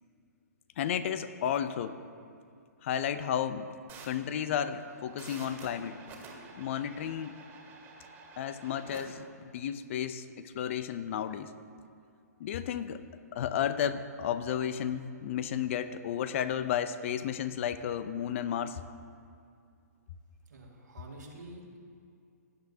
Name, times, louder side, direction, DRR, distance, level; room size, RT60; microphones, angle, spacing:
voice 1, 0.8-2.0 2.8-3.8 4.0-6.0 6.6-7.4 8.4-11.5 12.4-13.0 13.3-18.8, left 9 dB, 45° left, 13 dB, 0.5 m, -33 dB
sound 1, 3.9-9.0, right 4 dB, 25° right, 2.0 m, -50 dB
voice 2, 20.5-21.8, right 1 dB, 85° right, -1 dB, 2.2 m, -48 dB
16.5 x 7.9 x 2.8 m, 2.4 s
hypercardioid pair, 135°, 9 cm